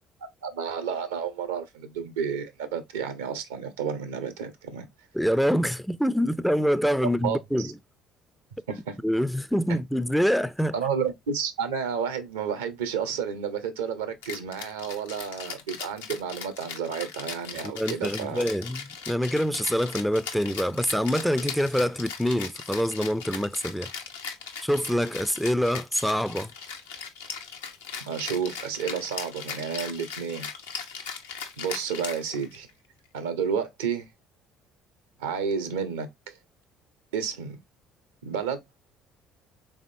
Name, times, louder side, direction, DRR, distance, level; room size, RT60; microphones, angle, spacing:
voice 1, 0.4-4.9 7.0-7.7 8.7-9.0 9.7-9.8 10.7-18.5 28.1-30.5 31.6-32.7 33.1-34.1 35.2-36.4 37.1-37.6 38.2-38.6, right 7 dB, 80° right, 0.6 m, -31 dB
voice 2, 5.1-7.7 9.0-10.7 17.6-23.9 24.6-26.5, equal, ahead, 0.3 m, -25 dB
Rattle (instrument), 14.2-32.7, left 6 dB, 85° left, 0.6 m, -38 dB
3.6 x 3.5 x 2.4 m
hypercardioid pair, 55°, 0 cm